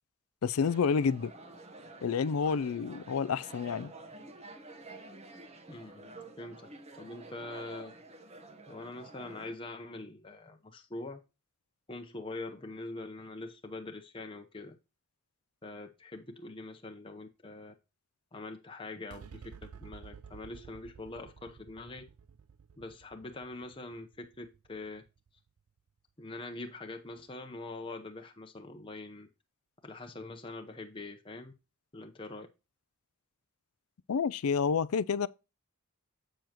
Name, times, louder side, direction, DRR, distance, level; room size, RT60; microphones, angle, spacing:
voice 1, 0.4-1.3 2.0-3.9 34.1-35.3, left 6 dB, 75° left, 0.4 m, -29 dB
sound 1, 0.6-9.5, right 2 dB, 30° right, 1.0 m, -50 dB
voice 2, 5.7-6.1 6.4-6.7 6.9-7.9 8.7-11.2 11.9-14.8 15.6-17.7 18.3-22.0 22.8-25.0 26.2-29.3 29.8-31.5 31.9-32.5, left 2 dB, 25° left, 0.8 m, -44 dB
sound 2, 19.1-25.8, right 6 dB, 90° right, 0.5 m, -53 dB
7.7 x 6.9 x 2.9 m
head